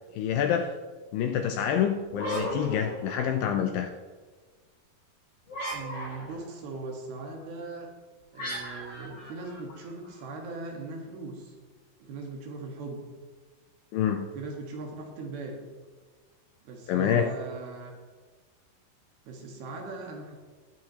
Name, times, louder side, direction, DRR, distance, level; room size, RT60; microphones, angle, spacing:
voice 1, 0.1-0.7 1.1-3.9 13.9-14.3 16.9-17.3, left 8 dB, 80° left, 6 dB, 2.1 m, -27 dB
sound 1, 2.1-3.6 5.5-6.5 8.4-10.2, equal, 35° left, 3.8 m, -36 dB
voice 2, 5.7-7.9 8.3-11.5 12.0-13.0 14.3-15.6 16.6-17.9 19.3-20.4, right 3 dB, 75° right, 1 dB, 3.4 m, -39 dB
20.5 x 8.6 x 2.9 m, 1.4 s
omnidirectional pair, 4.6 m